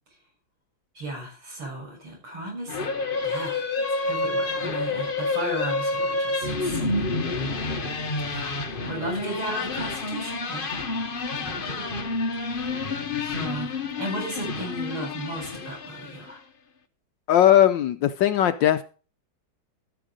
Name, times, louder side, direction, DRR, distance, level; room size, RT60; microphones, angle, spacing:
voice 1, 0.9-2.8 3.2-3.6 4.0-7.7 8.3-8.6 8.8-10.7 11.4-11.9 12.4-13.7 14.0-16.4, right 1 dB, 85° right, 7.4 m, -35 dB
sound 1, 2.7-16.3, left 3 dB, 35° left, 0.9 m, -29 dB
voice 2, 17.3-18.8, left 11 dB, 70° left, 1.3 m, -19 dB
14.0 x 6.8 x 5.1 m
omnidirectional pair, 2.2 m